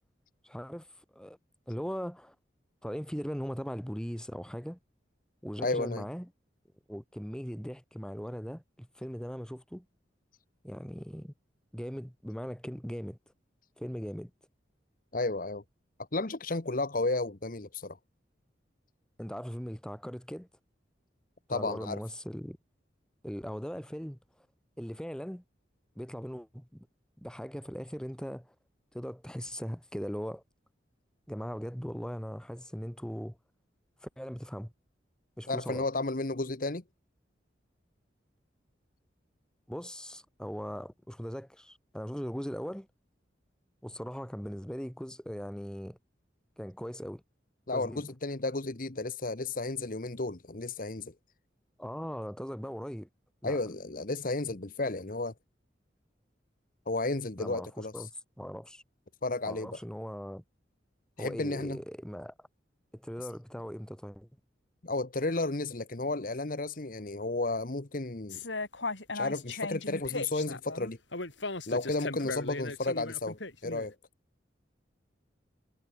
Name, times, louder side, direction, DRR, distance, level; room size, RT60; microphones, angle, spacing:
voice 1, 0.4-0.9 1.1-1.4 1.7-2.3 2.8-4.8 5.4-6.3 6.9-9.9 10.6-11.3 11.7-13.2 13.8-14.3 19.2-20.5 21.5-22.6 23.2-24.2 24.8-25.4 26.0-26.9 27.2-28.5 28.9-30.4 31.3-33.4 34.0-34.7 35.4-35.9 39.7-42.9 43.8-46.0 46.6-47.2 47.7-48.1 51.8-53.1 53.4-53.6 57.4-58.1 58.4-58.8 59.4-60.4 61.2-62.5 62.9-64.3, equal, 5° left, 2.3 m, -39 dB
voice 2, 5.6-6.0 15.1-15.6 16.1-18.0 21.5-22.0 35.5-36.8 47.7-51.1 53.4-55.3 56.9-57.9 59.2-59.8 61.2-61.8 64.8-68.4 69.1-71.0 71.7-73.9, left 2 dB, 50° left, 1.2 m, -33 dB
sound 1, 68.3-73.9, left 3 dB, 85° left, 5.2 m, -37 dB
head